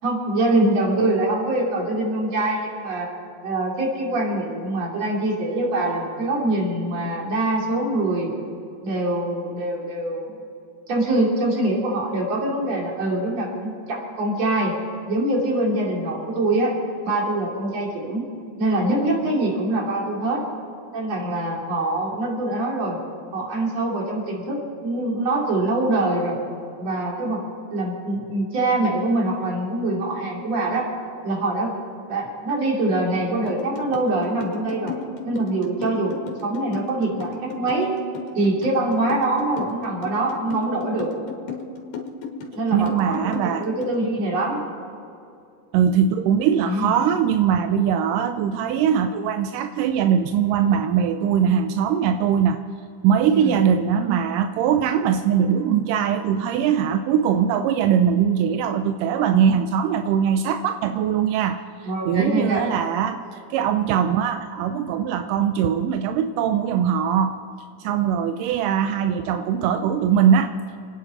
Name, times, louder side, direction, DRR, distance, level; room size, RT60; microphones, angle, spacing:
voice 1, 0.0-3.1 3.4-8.3 8.8-10.3 10.9-14.7 15.1-16.7 17.0-18.3 18.6-20.4 20.9-23.0 23.3-26.4 26.8-27.4 27.7-30.9 31.2-31.8 32.1-34.9 35.2-36.2 36.4-37.9 38.4-41.1 42.5-44.6 46.6-46.9 53.3-53.5 60.3-60.4 61.8-62.6, right 2 dB, 55° right, -2 dB, 4.1 m, -24 dB
sound 1, 33.5-44.0, left 6 dB, 75° left, 3.2 m, -34 dB
voice 2, 42.7-43.7 45.7-52.6 53.0-61.6 62.1-67.4 67.8-70.5, right 8 dB, 90° right, 8 dB, 2.2 m, -21 dB
29.0 x 10.0 x 4.3 m, 2.5 s
omnidirectional pair, 3.7 m